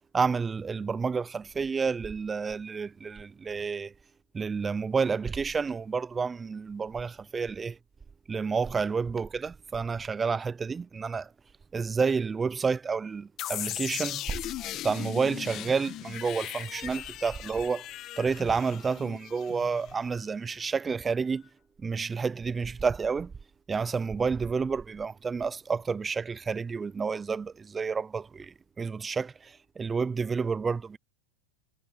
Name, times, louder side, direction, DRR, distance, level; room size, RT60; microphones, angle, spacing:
voice 1, 0.1-3.9 4.3-7.8 8.3-11.3 11.7-14.3 14.8-17.9 18.2-21.4 21.8-23.3 23.7-31.0, right 5 dB, 15° right, 0.5 m, -30 dB
sound 1, 13.4-20.2, left 14 dB, 40° left, 1.3 m, -38 dB
hypercardioid pair, 120°, 0 cm